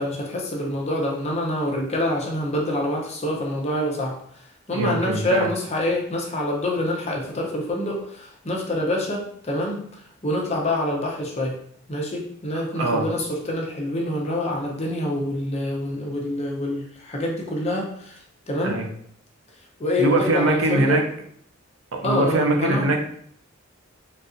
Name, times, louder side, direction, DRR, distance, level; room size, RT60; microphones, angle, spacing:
voice 1, 0.0-4.2 4.7-9.8 10.2-11.6 11.9-18.2 18.5-18.8 19.8-21.0 22.0-22.9, left 1 dB, 30° left, -1 dB, 0.7 m, -26 dB
voice 2, 4.7-5.5 12.8-13.1 18.6-18.9 20.0-21.1 21.9-23.0, right 2 dB, 70° right, 2 dB, 0.6 m, -22 dB
3.9 x 2.4 x 2.5 m, 0.63 s
head